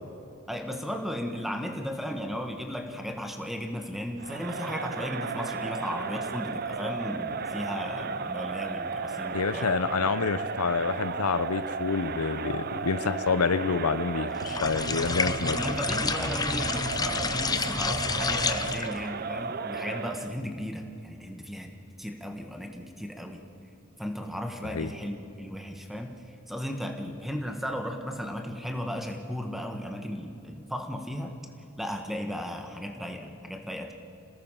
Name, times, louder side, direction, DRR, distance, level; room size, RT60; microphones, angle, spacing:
voice 1, 0.5-9.7 15.5-23.5 24.0-31.4 31.8-33.9, equal, ahead, 4 dB, 1.4 m, -35 dB
Crowd, 4.2-20.4, right 5 dB, 45° right, 0.6 m, -34 dB
voice 2, 9.3-15.6 24.7-24.9, left 5 dB, 90° left, 13 dB, 0.7 m, -28 dB
sound 1, 14.4-19.0, left 4 dB, 15° left, 0.6 m, -29 dB
26.5 x 18.5 x 5.8 m, 2.8 s
head